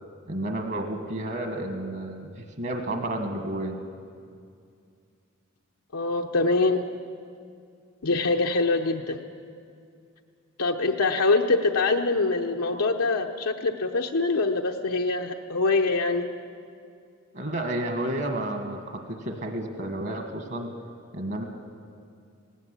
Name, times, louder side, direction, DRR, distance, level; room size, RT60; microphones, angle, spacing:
voice 1, 0.3-3.8 17.3-20.7 21.1-21.4, right 1 dB, 50° right, 4 dB, 1.6 m, -31 dB
voice 2, 5.9-6.8 8.0-9.2 10.6-16.3, left 3 dB, 85° left, 2 dB, 0.9 m, -24 dB
18.5 x 17.5 x 8.3 m, 2.3 s
head